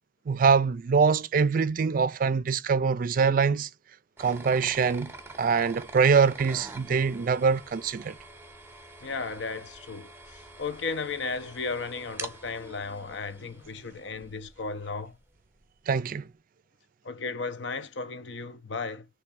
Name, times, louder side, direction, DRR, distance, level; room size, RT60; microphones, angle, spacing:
voice 1, 0.3-3.7 4.2-5.1 5.4-8.1 15.9-16.2, right 5 dB, 50° right, 0.4 m, -24 dB
sound 1, 4.2-15.0, right 2 dB, 15° right, 0.8 m, -46 dB
voice 2, 9.0-15.2 17.0-19.1, left 4 dB, 80° left, 0.7 m, -35 dB
3.5 x 3.1 x 4.6 m
head